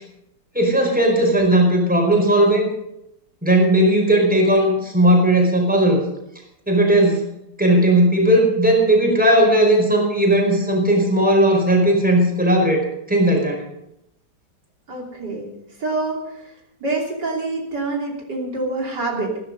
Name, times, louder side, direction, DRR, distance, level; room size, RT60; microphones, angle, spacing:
voice 1, 0.5-2.7 3.4-6.0 6.7-7.2 7.6-13.6, right 1 dB, 5° right, 0 dB, 4.7 m, -16 dB
voice 2, 14.9-15.5 15.8-16.5 16.8-19.4, right 2 dB, 70° right, -2 dB, 3.7 m, -26 dB
16.0 x 13.0 x 5.3 m, 0.82 s
omnidirectional pair, 1.9 m